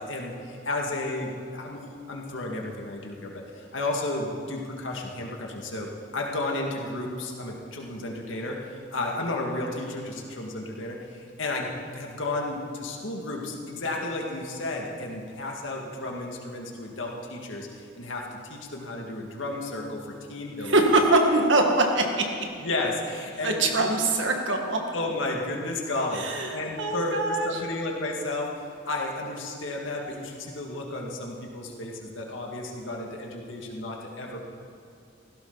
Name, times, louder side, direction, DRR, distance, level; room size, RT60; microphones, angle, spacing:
voice 1, 0.0-20.7 22.6-23.6 24.9-34.4, left 2 dB, 80° left, 0 dB, 2.2 m, -33 dB
voice 2, 20.6-22.3 23.4-24.8 26.1-27.6, right 2 dB, 75° right, 2 dB, 1.8 m, -23 dB
17.0 x 16.0 x 4.1 m, 2.5 s
head